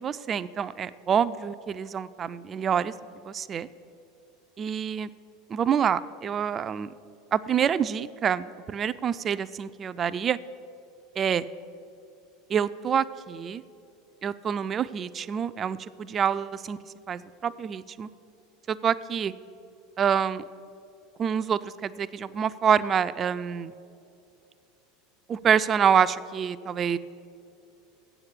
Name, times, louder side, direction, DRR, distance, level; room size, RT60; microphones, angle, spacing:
voice 1, 0.0-2.9 3.2-3.7 4.6-5.1 5.5-6.9 7.3-10.4 11.2-11.4 12.5-13.6 14.2-16.8 17.1-18.1 18.7-19.3 20.0-20.4 21.2-23.7 25.3-27.0, right 8 dB, 30° right, 15 dB, 0.3 m, -26 dB
8.1 x 7.7 x 7.4 m, 2.6 s
figure-of-eight pair, 75°, 0 cm